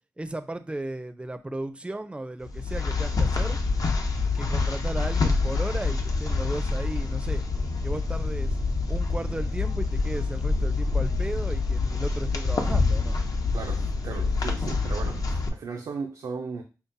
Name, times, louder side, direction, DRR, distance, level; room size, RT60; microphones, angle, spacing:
voice 1, 0.2-3.6 4.3-7.4 7.8-8.6 8.9-13.2, right 1 dB, 15° right, 11 dB, 0.4 m, -35 dB
sound 1, 2.4-15.5, left 3 dB, 60° left, 0.6 m, -26 dB
voice 2, 13.5-16.6, right 5 dB, 90° right, 2 dB, 0.4 m, -36 dB
5.2 x 2.3 x 2.6 m, 0.32 s
cardioid pair, 75°, 7 cm